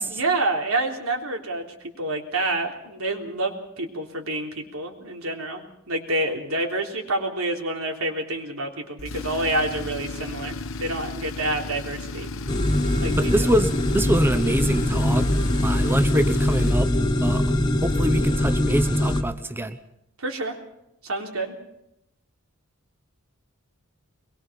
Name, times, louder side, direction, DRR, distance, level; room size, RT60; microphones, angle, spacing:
voice 1, 0.0-12.3 13.0-13.5 20.2-20.5 21.0-21.5, right 2 dB, 90° right, 2 dB, 3.5 m, -28 dB
Tools, 9.0-18.5, left 3 dB, 70° left, 1.1 m, -35 dB
sound 1, 12.5-19.2, left 1 dB, 20° left, 1.5 m, -22 dB
voice 2, 13.2-15.3 15.6-16.9 17.2-17.4 17.8-19.8, right 1 dB, 10° right, 8 dB, 0.8 m, -24 dB
23.0 x 21.5 x 5.8 m, 0.84 s
head